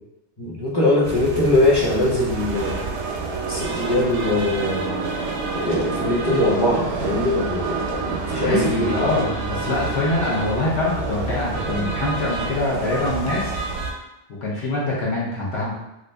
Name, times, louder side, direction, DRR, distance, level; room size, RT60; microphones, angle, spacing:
voice 1, 0.4-2.8 3.5-5.0 5.5-9.1, left 1 dB, 25° left, -6 dB, 0.8 m, -21 dB
sound 1, 1.0-13.9, right 3 dB, 90° right, 0.9 m, -28 dB
voice 2, 8.3-13.6 14.4-15.7, left 2 dB, 75° left, -6 dB, 1.1 m, -24 dB
2.9 x 2.5 x 3.3 m, 0.90 s
omnidirectional pair, 1.1 m